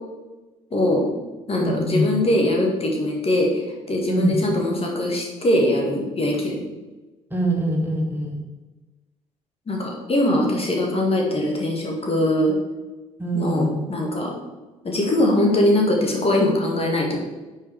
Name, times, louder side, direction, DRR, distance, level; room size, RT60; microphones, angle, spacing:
voice 1, 0.7-1.1 1.5-3.6 3.9-6.6 9.7-12.5 13.3-14.3 14.8-17.2, left 1 dB, 35° left, 0 dB, 2.1 m, -21 dB
voice 2, 1.6-2.1 4.1-4.4 7.3-8.4 13.2-13.8, right 1 dB, 10° right, 0 dB, 1.9 m, -23 dB
6.2 x 4.6 x 4.9 m, 1.2 s
hypercardioid pair, 55°, 16 cm